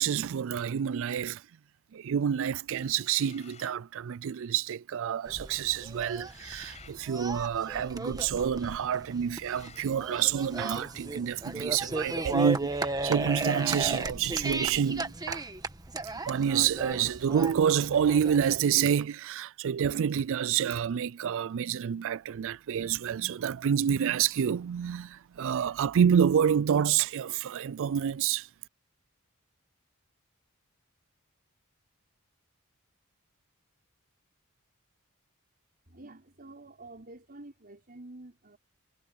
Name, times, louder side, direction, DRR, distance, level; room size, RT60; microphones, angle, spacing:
voice 1, 0.0-1.4 1.9-15.4 16.3-28.5, right 8 dB, 60° right, 0.4 m, -28 dB
sound 1, 2.7-3.8 6.1-7.0 9.3-9.9 12.3-12.4 12.7-12.9 13.5-13.9, left 6 dB, 30° left, 6.4 m, -53 dB
sound 2, 5.3-18.6, right 2 dB, 15° right, 1.4 m, -35 dB
voice 2, 35.9-38.6, right 2 dB, 45° right, 5.4 m, -48 dB
head